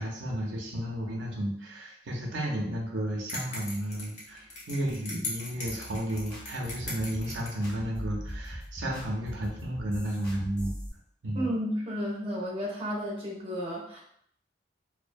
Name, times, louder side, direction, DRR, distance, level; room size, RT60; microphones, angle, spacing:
voice 1, 0.0-10.7 11.2-11.5, right 1 dB, 85° right, -1 dB, 0.5 m, -33 dB
sound 1, 3.3-7.7, left 2 dB, 40° left, 0.6 m, -39 dB
sound 2, 5.7-10.9, equal, 20° left, 0.9 m, -41 dB
voice 2, 11.3-14.0, equal, 30° right, -3 dB, 0.5 m, -32 dB
2.3 x 2.1 x 2.5 m, 0.67 s
head